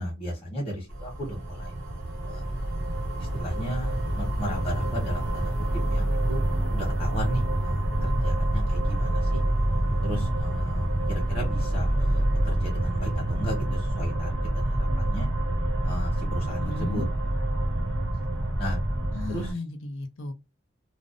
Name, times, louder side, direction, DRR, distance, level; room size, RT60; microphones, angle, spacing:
voice 1, 0.0-1.7 2.3-2.6 3.2-5.5 5.9-6.4 6.7-9.4 10.0-15.3 15.8-17.0 17.5-17.7 18.6-18.8 19.3-19.5, equal, 30° left, 1.0 m, -35 dB
sound 1, 0.9-19.5, right 1 dB, 80° right, 0.8 m, -27 dB
voice 2, 16.6-17.1 19.1-20.3, left 3 dB, 75° left, 0.6 m, -35 dB
2.5 x 2.0 x 2.4 m
head